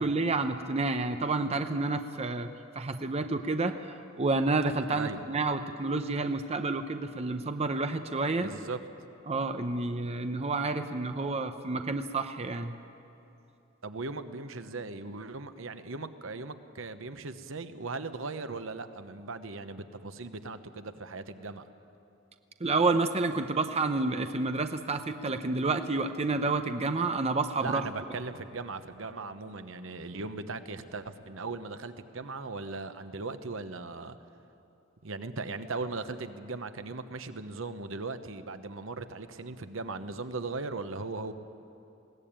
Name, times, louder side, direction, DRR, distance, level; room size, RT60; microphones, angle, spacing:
voice 1, 0.0-2.5 2.8-3.8 4.2-8.5 9.3-12.7 22.6-27.9, right 3 dB, 30° right, 7 dB, 0.7 m, -29 dB
voice 2, 8.4-8.8 13.8-21.6 27.6-34.2 35.0-41.3, right 3 dB, 70° right, 10 dB, 1.0 m, -38 dB
21.0 x 17.0 x 8.9 m, 2.9 s
head